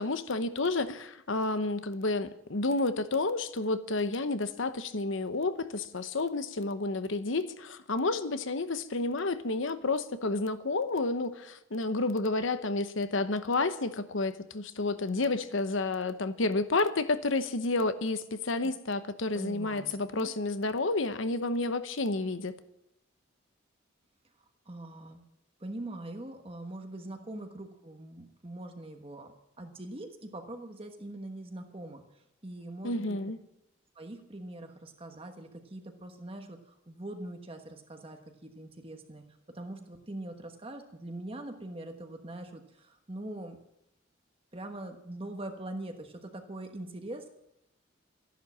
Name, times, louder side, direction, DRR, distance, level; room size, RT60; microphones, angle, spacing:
voice 1, 0.0-22.6 32.8-33.4, left 3 dB, 70° left, 12 dB, 0.9 m, -30 dB
voice 2, 19.3-20.3 24.7-25.2 25.6-33.2 33.9-43.6 44.5-47.3, right 1 dB, 25° right, 5 dB, 1.2 m, -43 dB
13.5 x 11.5 x 7.4 m, 0.81 s
head